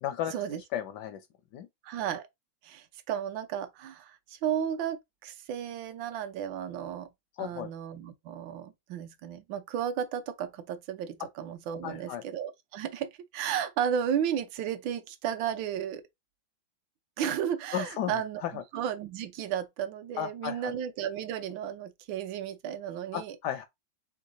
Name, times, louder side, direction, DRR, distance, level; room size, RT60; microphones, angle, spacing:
voice 1, 0.0-0.3 0.7-1.2 1.5-1.7 7.4-7.7 11.8-12.2 17.7-18.1 18.4-18.6 20.2-20.7 23.1-23.7, left 10 dB, 75° left, 1.0 m, -34 dB
voice 2, 1.8-2.3 2.6-7.1 7.4-16.0 17.2-18.4 18.7-23.4, right 9 dB, 75° right, 1.4 m, -33 dB
3.7 x 3.4 x 3.8 m
omnidirectional pair, 2.2 m